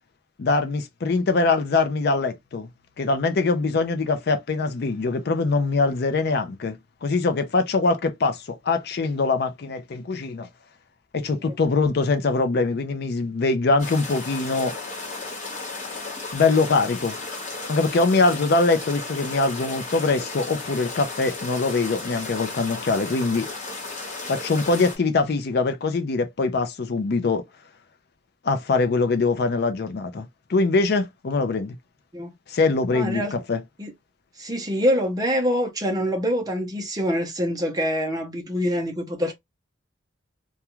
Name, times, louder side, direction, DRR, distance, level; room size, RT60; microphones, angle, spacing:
voice 1, 0.4-2.7 3.0-10.5 11.1-14.7 16.3-17.2 17.7-23.5 24.3-27.4 28.4-31.8 32.5-33.6, left 3 dB, 55° left, 0.4 m, -23 dB
sound 1, 13.8-25.0, left 3 dB, 40° left, 1.1 m, -34 dB
voice 2, 32.9-33.3 33.8-33.9 34.4-39.3, equal, 20° right, 0.6 m, -25 dB
2.3 x 2.3 x 2.9 m
head